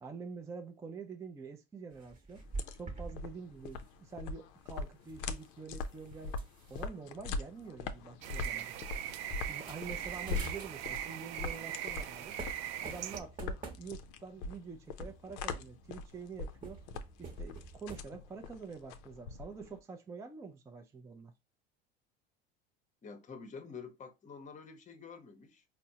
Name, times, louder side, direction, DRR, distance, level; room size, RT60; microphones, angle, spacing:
voice 1, 0.0-2.4 2.7-6.4 6.7-8.7 9.5-12.4 12.8-16.8 17.2-21.3, right 5 dB, 10° right, 0.3 m, -46 dB
sound 1, 1.9-3.2 3.5-3.8 4.9-6.9 7.6-7.7 8.0-8.3 8.8-9.0 9.5-11.1 12.0-12.1 12.4-14.3 15.0-15.9 16.5-18.0, right 3 dB, 25° right, 1.0 m, -47 dB
sound 2, 2.3-19.8, left 4 dB, 65° left, 0.5 m, -42 dB
sound 3, 8.2-13.2, right 11 dB, 70° right, 0.5 m, -40 dB
voice 2, 23.0-25.6, left 5 dB, 25° left, 0.7 m, -48 dB
4.2 x 2.0 x 2.7 m
hypercardioid pair, 90°, 31 cm